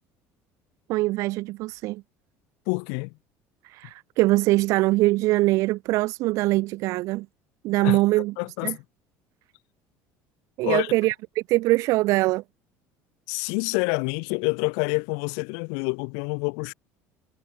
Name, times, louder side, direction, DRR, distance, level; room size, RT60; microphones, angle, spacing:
voice 1, 0.9-2.0 3.6-7.3 7.6-8.3 8.6-8.8 10.6-12.4, right 20 dB, 55° right, 1.3 m, -23 dB
voice 2, 2.7-3.1 7.8-8.0 8.4-8.8 10.6-10.9 13.3-16.7, left 40 dB or more, 90° left, 1.5 m, -27 dB
cardioid pair, 175°, 6 cm